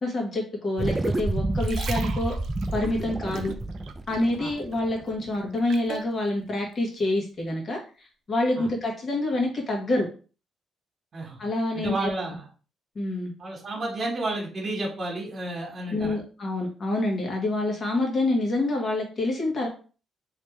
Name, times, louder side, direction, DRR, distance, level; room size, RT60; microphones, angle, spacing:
voice 1, 0.0-2.3 2.7-3.5 4.1-10.1 11.4-12.1 12.9-13.3 15.9-19.7, left 2 dB, 45° left, 0 dB, 1.6 m, -27 dB
sound 1, 0.8-5.4, right 2 dB, 20° right, 0.3 m, -29 dB
sound 2, 1.4-4.4 4.7-6.1 6.7-6.9, right 6 dB, 75° right, 0.5 m, -39 dB
voice 2, 11.7-12.5 13.4-16.2, right 2 dB, 45° right, -2 dB, 1.5 m, -31 dB
3.3 x 3.2 x 3.2 m, 0.37 s
cardioid pair, 90°, 0 cm